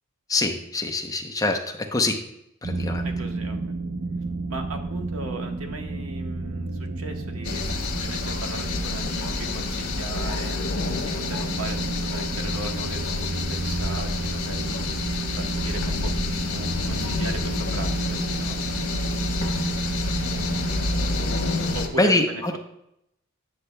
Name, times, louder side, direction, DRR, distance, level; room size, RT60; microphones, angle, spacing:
voice 1, 0.3-1.6 1.9-2.2 2.6-3.0 22.0-22.6, left 2 dB, 15° left, 3 dB, 0.6 m, -23 dB
sound 1, 2.6-21.8, right 3 dB, 60° right, 0.6 m, -31 dB
voice 2, 3.0-3.6 4.5-7.6 7.9-10.6 11.0-18.6 21.7-22.6, right 2 dB, 80° right, 4 dB, 1.0 m, -38 dB
sound 2, 7.4-21.9, left 3 dB, 80° left, 1.0 m, -29 dB
9.8 x 6.8 x 2.2 m, 0.79 s
head